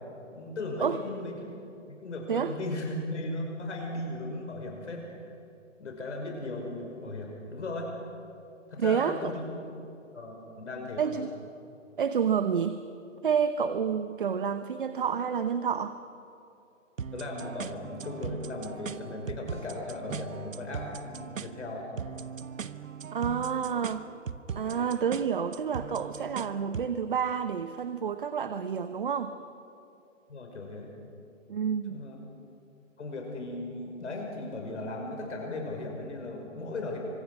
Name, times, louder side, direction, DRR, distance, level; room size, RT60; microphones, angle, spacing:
voice 1, 0.3-1.5 1.9-5.0 5.8-7.9 8.7-9.4 10.1-11.2 17.1-21.9 30.3-30.9 31.9-32.2 33.0-37.0, left 2 dB, 65° left, 1 dB, 5.5 m, -37 dB
voice 2, 8.8-9.3 11.0-11.3 12.0-12.8 13.2-16.0 23.1-24.0 24.5-29.3 31.5-32.0, right 7 dB, 40° right, 10 dB, 0.9 m, -29 dB
sound 1, 17.0-27.0, right 6 dB, 85° right, 1.3 m, -40 dB
29.0 x 25.5 x 6.3 m, 2.7 s
hypercardioid pair, 170°, 38 cm